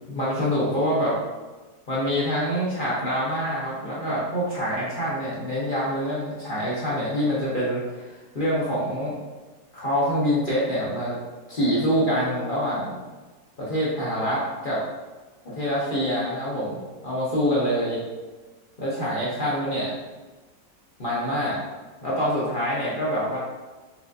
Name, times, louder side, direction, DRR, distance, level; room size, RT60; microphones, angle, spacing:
voice 1, 0.1-1.2 1.9-9.1 9.7-11.2 11.5-13.0 13.6-14.8 15.4-18.0 18.8-19.9 21.0-21.6 22.0-23.4, equal, 50° left, -8 dB, 0.6 m, -25 dB
4.4 x 2.6 x 2.4 m, 1.2 s
omnidirectional pair, 1.9 m